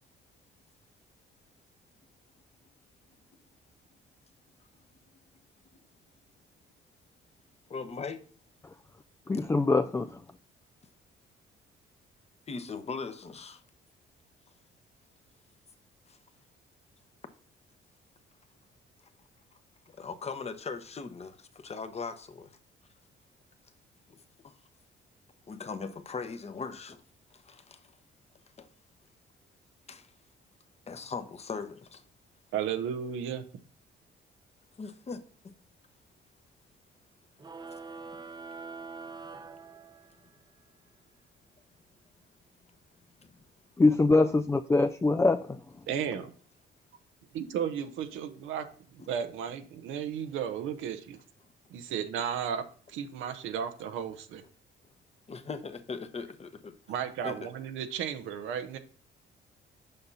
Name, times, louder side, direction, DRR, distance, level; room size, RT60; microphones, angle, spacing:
voice 1, 7.7-8.2 12.5-13.6 16.1-16.2 20.0-22.6 24.1-24.2 24.4-24.5 25.5-27.0 27.3-27.8 28.6-28.7 29.9-30.1 30.9-32.0 34.8-35.5 38.1-38.2 43.3-43.4 49.0-49.1 55.3-56.7 57.2-57.4, left 4 dB, 30° left, 0.9 m, -39 dB
voice 2, 9.3-10.2 43.8-45.6, left 3 dB, 15° left, 0.3 m, -24 dB
voice 3, 32.5-33.4 45.9-46.3 47.3-48.7 48.9-51.2 51.7-54.4 56.9-58.8, right 8 dB, 90° right, 0.7 m, -34 dB
sound 1, 37.4-40.4, right 4 dB, 20° right, 0.7 m, -44 dB
6.8 x 5.4 x 4.1 m
cardioid pair, 90°, 20 cm